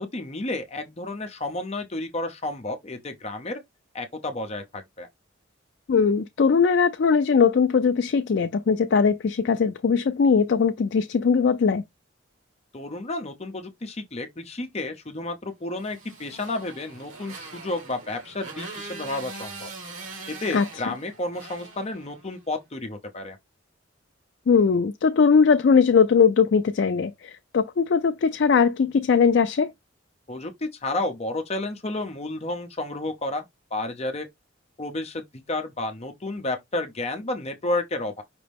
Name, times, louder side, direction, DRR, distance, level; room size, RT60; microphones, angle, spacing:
voice 1, 0.0-3.6 3.9-5.1 12.7-19.7 20.4-23.4 30.3-33.4 33.7-34.3 34.8-38.2, left 2 dB, 30° left, 0.8 m, -31 dB
voice 2, 5.9-11.8 20.5-20.6 24.5-29.7, left 5 dB, 60° left, 0.4 m, -20 dB
Motorcycle, 15.8-22.5, right 3 dB, 80° right, 1.3 m, -42 dB
5.2 x 2.8 x 3.4 m
head